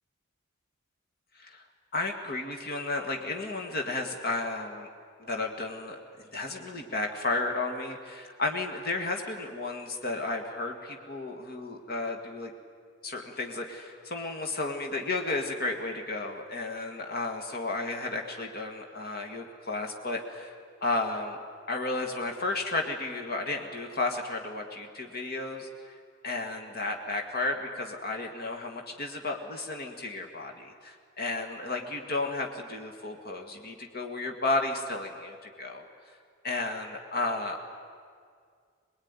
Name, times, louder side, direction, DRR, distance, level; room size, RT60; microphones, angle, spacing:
voice 1, 1.9-4.9 5.2-6.0 6.3-12.5 13.0-20.5 20.8-21.4 21.7-25.9 26.2-35.9 36.4-37.6, left 2 dB, 50° left, 3 dB, 1.9 m, -33 dB
22.5 x 21.5 x 9.7 m, 2.1 s
head